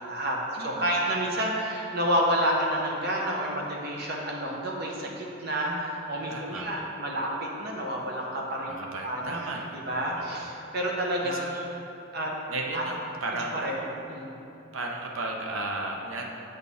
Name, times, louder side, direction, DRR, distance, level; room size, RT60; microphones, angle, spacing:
voice 1, 0.0-8.7 9.0-11.8 12.1-12.3 12.7-12.8 13.5-13.8 14.1-14.4, equal, 50° right, -2 dB, 0.7 m, -29 dB
voice 2, 0.5-0.9 5.6-5.8 6.3-6.7 8.7-9.8 10.1-10.5 11.2-11.6 12.5-14.0 14.7-16.3, right 2 dB, 85° right, 1 dB, 0.8 m, -35 dB
7.9 x 4.1 x 3.5 m, 2.9 s
head